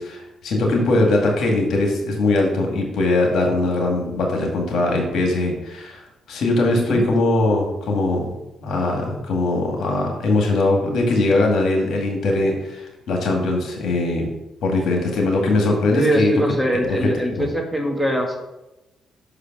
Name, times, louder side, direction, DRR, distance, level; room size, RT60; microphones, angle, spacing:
voice 1, 0.0-6.0 6.3-8.3 8.6-14.3 14.6-16.3 17.4-17.5, left 2 dB, 70° left, 1 dB, 1.9 m, -21 dB
voice 2, 15.9-18.4, right 1 dB, ahead, 2 dB, 1.5 m, -22 dB
6.1 x 4.9 x 6.0 m, 0.97 s
cardioid pair, 90°, 0 cm